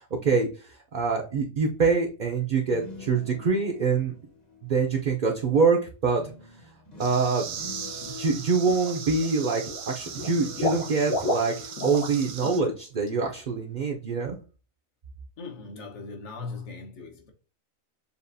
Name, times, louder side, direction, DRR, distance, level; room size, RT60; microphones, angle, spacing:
voice 1, 0.0-4.1 4.6-6.2 7.0-7.5 8.2-14.4, right 4 dB, 50° right, 0.6 m, -25 dB
sound 1, 2.5-5.4 6.2-13.1 13.5-13.8, left 4 dB, 35° left, 1.0 m, -46 dB
sound 2, 7.0-12.6, right 7 dB, 75° right, 1.1 m, -39 dB
Water / Liquid, 8.0-8.3 8.6-9.3 9.6-12.2 12.4-12.6 13.0-13.1, left 1 dB, 80° left, 1.6 m, -32 dB
voice 2, 15.4-17.3, left 4 dB, 60° left, 1.3 m, -39 dB
6.9 x 2.4 x 2.6 m
omnidirectional pair, 1.4 m